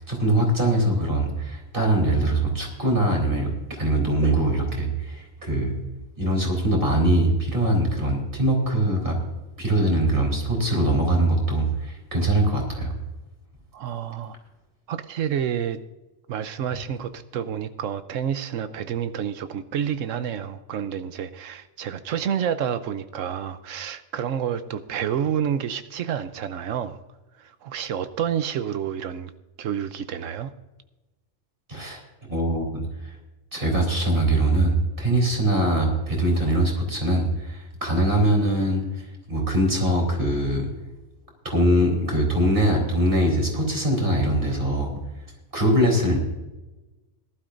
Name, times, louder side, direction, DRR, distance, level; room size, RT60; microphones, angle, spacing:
voice 1, 0.0-3.5 3.8-5.7 6.2-9.2 9.6-12.9 31.7-32.0 32.3-32.8 33.5-38.8 39.3-40.7 41.4-44.9 45.5-46.2, right 1 dB, 45° right, 4.0 m, -22 dB
voice 2, 13.7-14.4 14.9-15.8 16.3-27.0 27.4-29.3 29.6-30.5, right 8 dB, 90° right, 1.1 m, -29 dB
19.0 x 12.5 x 2.6 m
omnidirectional pair, 1.3 m